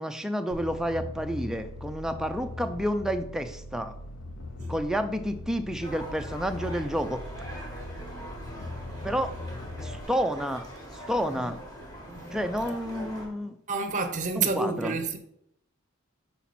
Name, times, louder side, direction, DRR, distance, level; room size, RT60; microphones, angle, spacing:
voice 1, 0.0-3.9 4.7-7.2 9.0-9.3 9.8-10.7 10.9-11.6 12.3-13.6 14.4-14.9, equal, 5° right, 0.3 m, -30 dB
sound 1, 0.5-10.0, left 2 dB, 60° left, 0.6 m, -40 dB
sound 2, 5.8-13.3, equal, 20° left, 1.5 m, -42 dB
voice 2, 8.6-9.1 11.3-11.5 12.1-12.6 13.7-15.2, right 4 dB, 35° right, 0.7 m, -31 dB
5.8 x 5.0 x 4.2 m
head